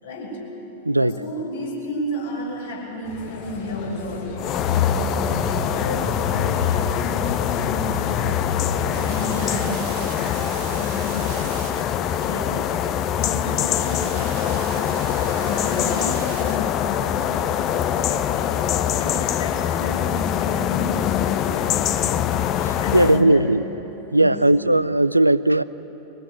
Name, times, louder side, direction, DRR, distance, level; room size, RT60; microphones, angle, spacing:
voice 1, 0.0-0.4 1.0-8.5 8.8-11.8 12.2-12.6 13.0-18.5 19.0-21.8 22.7-23.5 24.2-24.4, left 2 dB, 65° left, -3 dB, 7.5 m, -32 dB
voice 2, 0.8-1.2 22.3-23.6 24.1-25.6, right 1 dB, 85° right, 16 dB, 0.5 m, -18 dB
sound 1, 3.0-9.3, left 6 dB, 50° left, 7.9 m, -28 dB
sound 2, 4.4-23.2, left 10 dB, 35° left, 0.9 m, -24 dB
sound 3, 8.9-18.3, right 8 dB, 40° right, 1.8 m, -40 dB
23.5 x 20.0 x 9.3 m, 3.0 s
figure-of-eight pair, 90°, 0 cm